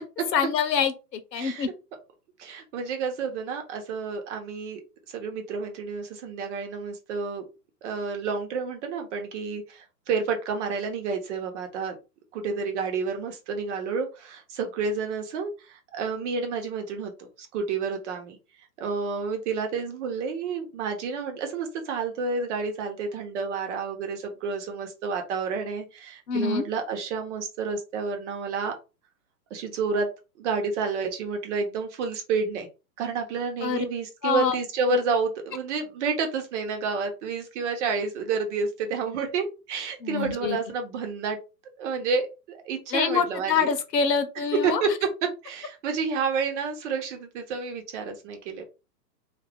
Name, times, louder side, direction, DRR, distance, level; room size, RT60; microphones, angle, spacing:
voice 1, 0.3-1.7 26.3-26.7 33.6-33.8 34.2-34.6 34.9-35.0 40.0-40.6 42.9-44.8, left 6 dB, 80° left, 0.9 m, -25 dB
voice 2, 2.4-4.8 5.1-7.4 7.8-12.0 12.3-18.4 18.8-28.7 29.5-30.1 30.4-32.7 33.0-41.4 41.8-43.7 44.6-44.9 45.4-48.6, right 5 dB, 45° right, 1.0 m, -30 dB
2.5 x 2.5 x 3.5 m
hypercardioid pair, 125°, 49 cm